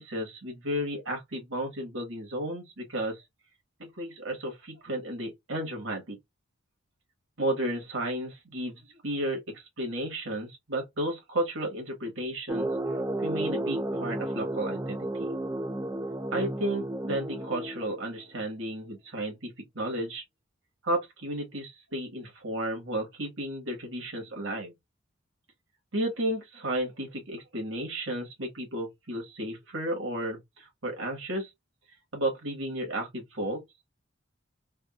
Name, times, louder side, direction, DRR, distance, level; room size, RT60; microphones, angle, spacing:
voice 1, 0.0-3.2 3.8-6.2 7.4-12.7 13.2-15.3 16.3-20.2 20.8-24.7 25.9-31.5 32.1-33.6, right 1 dB, 70° right, 1.5 m, -33 dB
sound 1, 12.5-18.2, right 1 dB, 15° right, 0.3 m, -32 dB
3.5 x 2.3 x 2.3 m
head